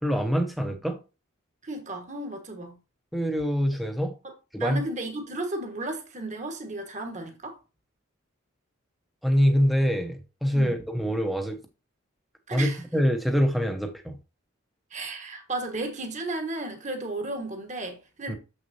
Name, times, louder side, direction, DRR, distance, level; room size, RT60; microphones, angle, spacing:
voice 1, 0.0-1.0 3.1-4.2 4.5-4.8 9.2-11.6 12.5-14.2 18.3-18.4, equal, ahead, 1.0 m, -25 dB
voice 2, 1.6-2.8 4.6-7.6 10.5-10.8 12.5-12.8 14.9-18.4, right 2 dB, 35° right, 1.6 m, -34 dB
7.4 x 6.4 x 2.8 m
head